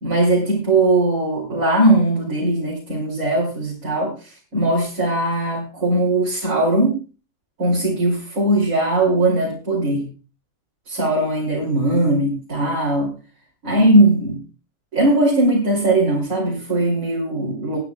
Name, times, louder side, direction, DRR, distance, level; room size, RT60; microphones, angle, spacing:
voice 1, 0.0-7.0 7.6-10.1 10.9-13.1 13.6-14.4 14.9-17.8, right 2 dB, 90° right, -3 dB, 3.3 m, -19 dB
22.5 x 9.2 x 2.3 m, 0.33 s
omnidirectional pair, 1.4 m